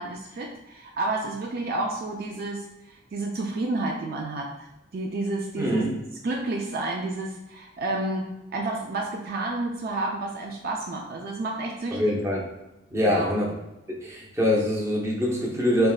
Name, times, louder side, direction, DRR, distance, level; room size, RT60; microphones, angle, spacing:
voice 1, 0.0-4.5 4.9-5.8 6.2-12.1 13.0-13.4, right 2 dB, 45° right, 0 dB, 0.4 m, -30 dB
voice 2, 5.6-5.9 11.9-12.4 12.9-13.5 14.0-15.9, left 1 dB, 15° right, -3 dB, 0.7 m, -24 dB
3.9 x 3.4 x 2.3 m, 0.95 s
head